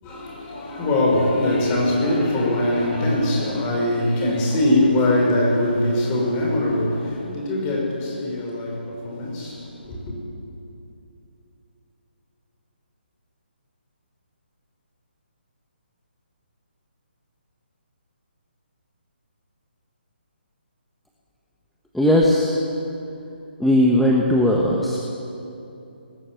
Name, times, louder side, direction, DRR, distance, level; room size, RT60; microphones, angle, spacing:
voice 1, 0.0-10.1, left 1 dB, 20° left, -2 dB, 5.4 m, -22 dB
voice 2, 21.9-22.6 23.6-25.0, left 1 dB, ahead, -3 dB, 1.2 m, -18 dB
19.5 x 14.5 x 9.2 m, 2.8 s
figure-of-eight pair, 150°, 6 cm